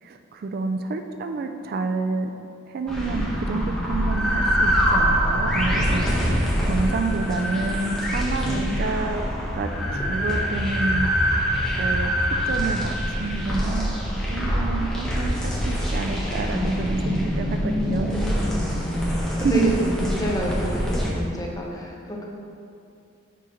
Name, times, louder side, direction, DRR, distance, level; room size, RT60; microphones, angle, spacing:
voice 1, 0.0-2.3 2.7-6.3 6.6-9.3 9.5-11.1 11.7-12.1 12.5-13.9 14.3-18.1 19.4-19.7, right 3 dB, 50° right, 6 dB, 0.3 m, -28 dB
sound 1, 2.9-21.1, equal, 5° left, 1.3 m, -24 dB
voice 2, 17.6-18.6 19.4-22.2, left 1 dB, 20° left, -2 dB, 0.9 m, -29 dB
6.5 x 4.0 x 5.0 m, 2.5 s
head